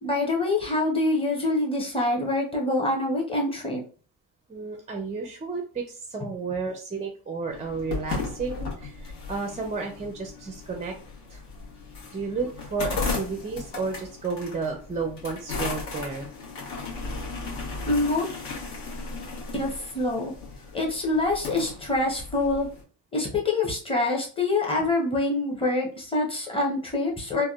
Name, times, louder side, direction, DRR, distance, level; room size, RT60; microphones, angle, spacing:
voice 1, 0.0-3.8 6.2-6.3 17.8-18.2 19.5-20.3 20.7-22.7 23.1-27.5, left 2 dB, 10° left, -1 dB, 0.8 m, -25 dB
voice 2, 4.5-10.9 11.3-11.4 12.1-16.3, right 4 dB, 15° right, 3 dB, 0.4 m, -32 dB
sound 1, 7.5-22.8, left 3 dB, 65° left, 1.3 m, -36 dB
3.4 x 2.3 x 2.3 m, 0.39 s
cardioid pair, 115°, 44 cm